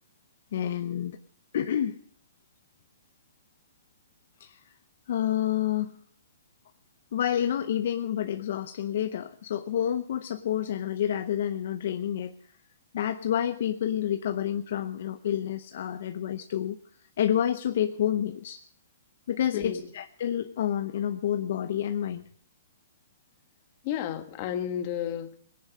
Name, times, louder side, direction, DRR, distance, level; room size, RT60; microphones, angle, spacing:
voice 1, 0.5-1.2 1.5-2.0 4.4-4.6 5.1-5.9 7.1-12.3 12.9-16.8 17.2-18.6 19.3-22.2, left 10 dB, 60° left, 9 dB, 0.7 m, -29 dB
voice 2, 23.8-25.4, left 10 dB, 40° left, 8 dB, 1.6 m, -32 dB
18.0 x 10.5 x 6.4 m, 0.63 s
hypercardioid pair, 150°, 0 cm